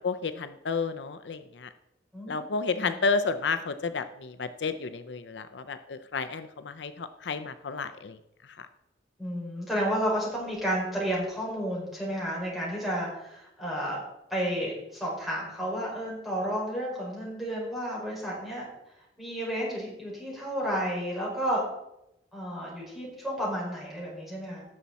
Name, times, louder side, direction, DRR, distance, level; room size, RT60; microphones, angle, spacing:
voice 1, 0.0-1.7 2.3-8.2 8.6-8.7, left 4 dB, 70° left, 11 dB, 0.6 m, -31 dB
voice 2, 2.1-2.5 2.7-2.9 9.2-14.0 14.3-18.7 19.2-21.6 22.3-24.6, equal, ahead, -5 dB, 5.1 m, -31 dB
17.5 x 6.9 x 4.2 m, 0.86 s
head